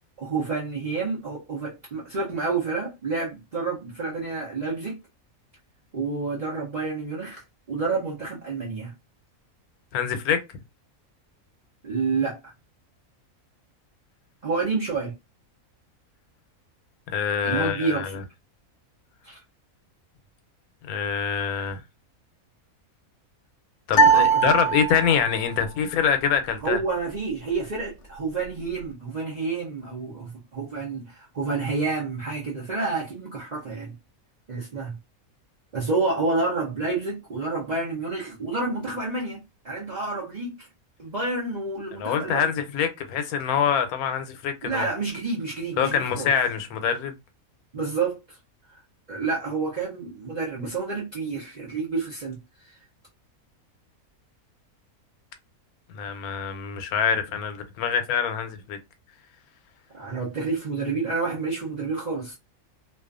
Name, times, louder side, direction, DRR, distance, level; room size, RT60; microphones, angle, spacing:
voice 1, 0.2-5.0 5.9-7.4 7.7-8.9 11.8-12.5 14.4-15.1 17.4-18.2 19.2-19.4 24.1-24.4 26.6-33.9 34.5-35.0 35.7-40.7 41.0-42.5 44.6-46.3 47.7-48.2 48.7-48.8 49.1-52.4 52.6-52.8 59.9-62.4, right 4 dB, 50° right, 0.5 m, -29 dB
voice 2, 9.9-10.4 17.1-18.1 20.9-21.8 23.9-26.8 42.0-44.9 45.8-47.1 55.9-58.8, left 7 dB, 85° left, 1.0 m, -25 dB
sound 1, 23.9-25.4, right 4 dB, 65° left, 0.8 m, -20 dB
2.4 x 2.3 x 2.3 m
omnidirectional pair, 1.5 m